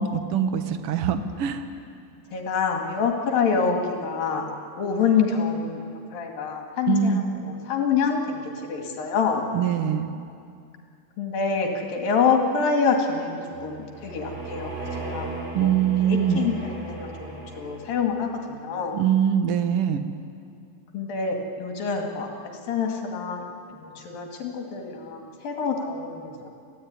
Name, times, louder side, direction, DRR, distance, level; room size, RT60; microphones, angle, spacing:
voice 1, 0.0-1.6 6.9-7.2 9.5-10.1 15.5-16.5 18.9-20.0, right 8 dB, 60° right, 8 dB, 1.6 m, -23 dB
voice 2, 2.3-5.8 6.1-8.4 8.7-9.5 11.2-15.3 15.6-19.0 20.9-23.4 23.8-26.5, left 5 dB, 75° left, 2 dB, 4.2 m, -26 dB
sound 1, 13.5-18.1, right 3 dB, 40° right, 6.0 m, -37 dB
26.0 x 16.5 x 9.8 m, 2.4 s
omnidirectional pair, 4.2 m